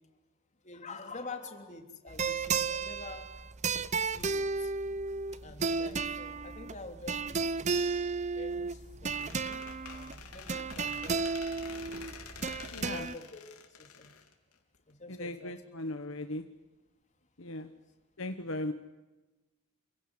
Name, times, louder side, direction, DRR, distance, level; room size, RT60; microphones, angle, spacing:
voice 1, 0.6-3.3 4.0-4.7 5.4-7.7 8.3-9.6 9.9-11.3 12.9-13.4 13.7-14.1 14.9-15.5 17.4-17.8, left 3 dB, 35° left, 4 dB, 3.2 m, -47 dB
sound 1, 2.1-13.2, right 4 dB, 30° right, 0.8 m, -33 dB
Squeak, 9.1-14.9, left 6 dB, 85° left, 3.5 m, -48 dB
voice 2, 12.7-13.1 15.1-16.4 17.4-17.7 18.2-18.7, left 1 dB, 60° left, 7 dB, 1.4 m, -37 dB
28.0 x 17.0 x 9.7 m, 1.1 s
head